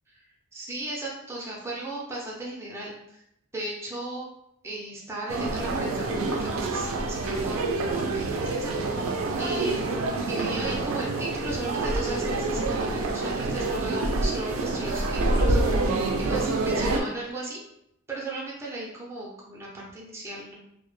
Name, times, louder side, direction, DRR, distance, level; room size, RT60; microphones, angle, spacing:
voice 1, 0.5-3.2 3.5-4.3 4.6-7.7 7.9-9.8 10.3-16.0 16.3-17.6 18.1-20.6, right 2 dB, 15° right, -4 dB, 0.5 m, -36 dB
sound 1, 5.3-17.0, right 2 dB, 70° right, 0.3 m, -27 dB
2.0 x 2.0 x 3.0 m, 0.78 s
head